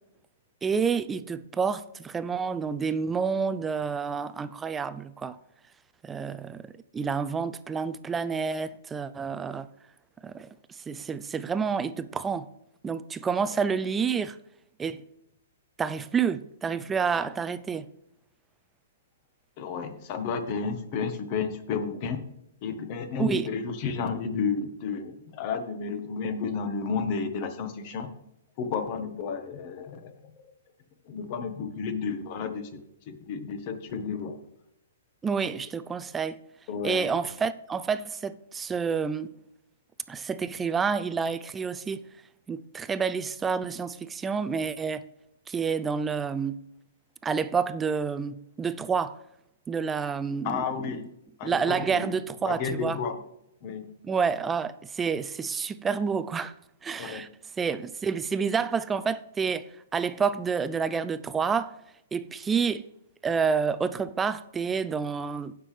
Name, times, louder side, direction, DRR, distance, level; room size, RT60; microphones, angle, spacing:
voice 1, 0.6-5.4 6.0-9.7 10.2-12.5 12.8-14.4 14.8-15.0 15.8-17.9 23.2-23.5 35.2-36.4 36.8-39.3 40.1-42.0 42.5-45.0 45.5-46.6 47.2-49.2 49.7-50.6 51.4-53.0 54.0-56.5 56.8-57.3 57.6-61.7 62.1-62.8 63.2-65.5, right 6 dB, 10° right, 0.4 m, -29 dB
voice 2, 19.6-22.2 22.6-28.1 28.6-30.5 31.1-34.4 36.7-37.2 50.4-51.1 51.4-52.1 52.4-53.2 53.6-53.9 57.0-57.3, left 5 dB, 40° left, 1.3 m, -32 dB
16.0 x 6.0 x 3.3 m
hypercardioid pair, 150°, 0 cm